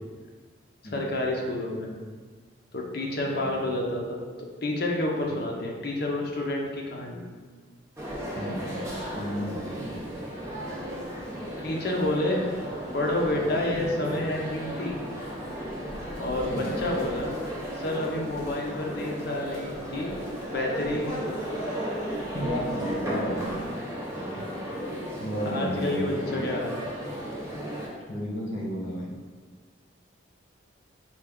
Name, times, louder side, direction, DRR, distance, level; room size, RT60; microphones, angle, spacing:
voice 1, 0.9-1.9 2.7-4.2 4.6-7.2 11.6-12.4 12.9-15.0 16.2-16.5 16.8-17.3 17.8-20.1 20.5-21.3 25.4-26.8, left 1 dB, 50° left, -1 dB, 0.6 m, -29 dB
sound 1, 8.0-27.9, equal, 15° right, 0.6 m, -35 dB
voice 2, 8.3-8.7 9.1-10.0 16.5-16.7 22.3-23.8 24.3-24.4 25.2-26.4 28.1-29.1, equal, 70° left, -3 dB, 1.0 m, -33 dB
4.4 x 2.3 x 3.5 m, 1.5 s
head